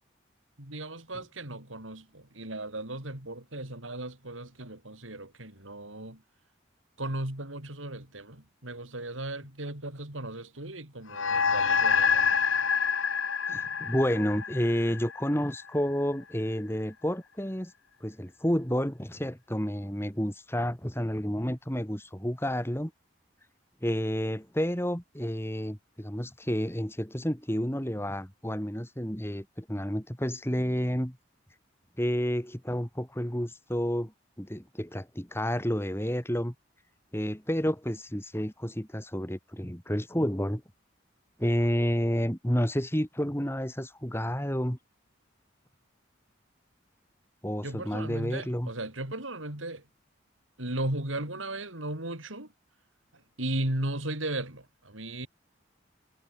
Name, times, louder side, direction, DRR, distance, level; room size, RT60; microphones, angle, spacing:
voice 1, 0.6-6.2 7.0-12.4 47.6-49.8 50.6-52.5 53.4-55.3, right 1 dB, 80° right, 5.4 m, -36 dB
sound 1, 11.1-15.8, left 6 dB, 85° left, 1.7 m, -27 dB
voice 2, 13.5-17.7 18.0-22.9 23.8-31.2 32.0-36.5 37.1-40.6 41.4-44.8 47.4-48.7, equal, 10° left, 4.0 m, -30 dB
head